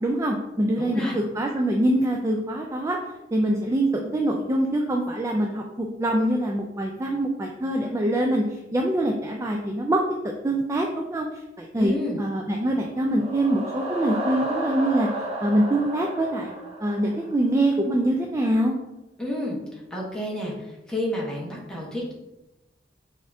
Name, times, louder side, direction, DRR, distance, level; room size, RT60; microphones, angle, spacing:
voice 1, 0.0-3.0 3.3-11.3 11.6-15.1 15.4-16.5 16.8-18.7, right 1 dB, 15° right, 1 dB, 0.3 m, -24 dB
voice 2, 0.8-1.2 11.8-12.2 19.2-19.6 19.9-20.5 20.9-22.1, left 1 dB, 5° left, -4 dB, 1.0 m, -29 dB
sound 1, 12.8-17.6, right 1 dB, 35° right, 0.8 m, -32 dB
5.3 x 3.6 x 2.6 m, 0.97 s
head